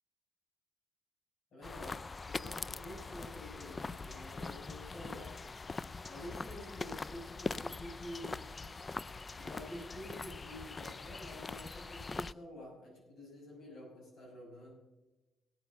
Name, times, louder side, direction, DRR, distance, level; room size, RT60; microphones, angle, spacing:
voice 1, 1.5-5.3 6.1-8.4 9.3-14.7, left 1 dB, 65° left, -3 dB, 6.0 m, -49 dB
sound 1, 1.6-12.3, left 3 dB, 30° left, 0.3 m, -42 dB
17.5 x 7.9 x 6.9 m, 1.1 s
cardioid pair, 90°, 0 cm